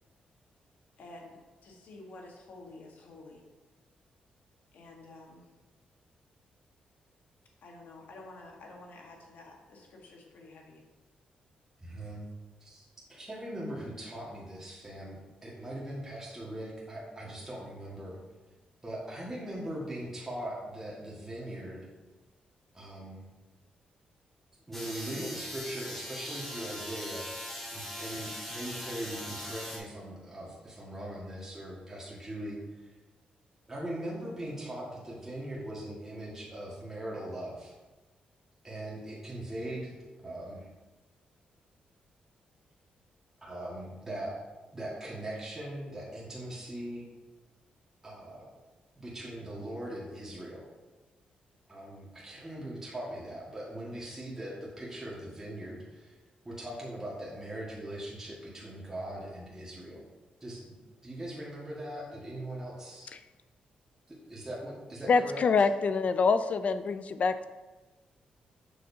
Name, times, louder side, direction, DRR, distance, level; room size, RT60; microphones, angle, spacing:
voice 1, 1.0-3.4 4.7-5.5 7.6-10.8, left 2 dB, 70° left, 0 dB, 1.4 m, -50 dB
voice 2, 11.8-12.2 12.6-12.8 13.1-15.2 15.4-18.2 18.8-21.9 22.7-23.2 24.7-27.3 27.7-32.9 33.7-37.7 38.6-40.7 43.4-44.4 44.7-47.1 48.0-48.5 49.0-50.7 51.7-56.2 56.5-60.0 60.4-60.7 61.0-63.1 64.1-65.4, right 1 dB, 15° right, -6 dB, 1.7 m, -40 dB
sound 1, 24.7-29.8, equal, 10° left, 2.0 m, -40 dB
voice 3, 65.1-67.4, left 5 dB, 50° left, 11 dB, 0.4 m, -25 dB
6.8 x 6.2 x 2.8 m, 1.2 s
cardioid pair, 85°, 3 cm